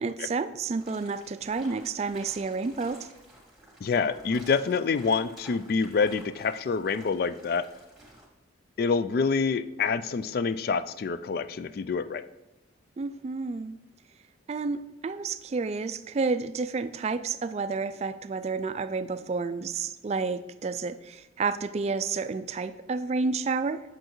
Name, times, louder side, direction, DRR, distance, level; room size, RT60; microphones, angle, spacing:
voice 1, 0.0-3.1 13.0-13.8 14.5-23.8, right 4 dB, 35° right, 12 dB, 0.3 m, -30 dB
sound 1, 0.8-8.3, right 1 dB, ahead, 1.8 m, -52 dB
voice 2, 3.8-7.7 8.8-12.2, left 5 dB, 50° left, 14 dB, 0.3 m, -27 dB
7.7 x 7.5 x 3.0 m, 1.0 s
head